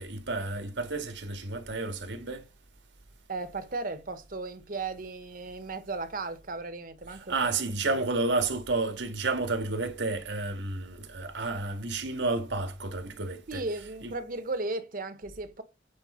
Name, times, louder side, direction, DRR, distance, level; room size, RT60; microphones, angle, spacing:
voice 1, 0.0-2.4 7.3-13.6 14.0-14.1, right 3 dB, 75° right, 1.7 m, -31 dB
voice 2, 3.3-7.3 7.9-8.0 13.5-15.6, right 3 dB, 50° right, 1.2 m, -35 dB
8.9 x 4.7 x 4.4 m
head